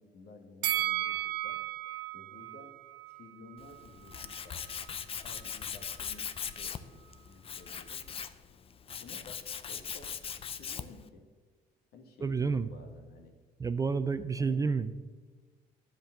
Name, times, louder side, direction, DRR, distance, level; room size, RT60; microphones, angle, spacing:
voice 1, 0.0-1.6 2.1-2.7 3.1-4.7 5.2-8.0 9.0-11.3 11.9-13.4 14.3-14.6, left 3 dB, 65° left, 5 dB, 1.7 m, -53 dB
Bell, 0.6-3.8 4.2-4.3, right 15 dB, 90° right, 0.5 m, -35 dB
Tools, 3.6-11.1, left 7 dB, 35° left, 0.5 m, -40 dB
voice 2, 12.2-12.7 13.6-14.9, right 5 dB, 20° right, 12 dB, 0.4 m, -29 dB
10.0 x 5.2 x 7.7 m, 1.4 s
cardioid pair, 110°, 17 cm